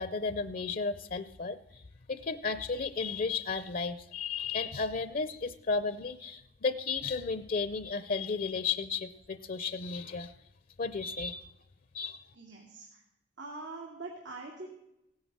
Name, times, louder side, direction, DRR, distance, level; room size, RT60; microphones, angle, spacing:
voice 1, 0.0-1.8 2.1-10.3 10.8-11.5 11.9-12.2, left 4 dB, 50° left, 14 dB, 0.6 m, -33 dB
voice 2, 12.4-13.0 13.4-14.7, right 3 dB, 90° right, -1 dB, 2.3 m, -43 dB
16.5 x 9.5 x 7.3 m, 0.89 s
head